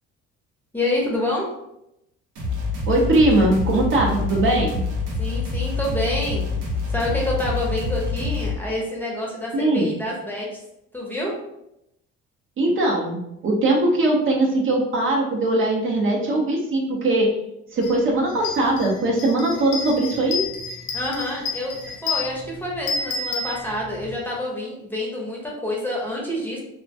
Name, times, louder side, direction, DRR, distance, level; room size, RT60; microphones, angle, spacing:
voice 1, 0.7-1.5 5.2-6.5 6.9-10.6 10.9-11.3 20.9-26.6, left 1 dB, 5° left, -4 dB, 0.7 m, -27 dB
sound 1, 2.4-8.6, left 4 dB, 80° right, 0.7 m, -26 dB
voice 2, 2.9-4.8 9.5-9.9 12.6-17.3 17.7-20.4, right 2 dB, 45° right, -2 dB, 0.6 m, -20 dB
sound 2, 17.8-18.0 18.3-24.1, left 4 dB, 85° left, 0.6 m, -30 dB
2.2 x 2.2 x 2.6 m, 0.84 s
supercardioid pair, 90°, 29 cm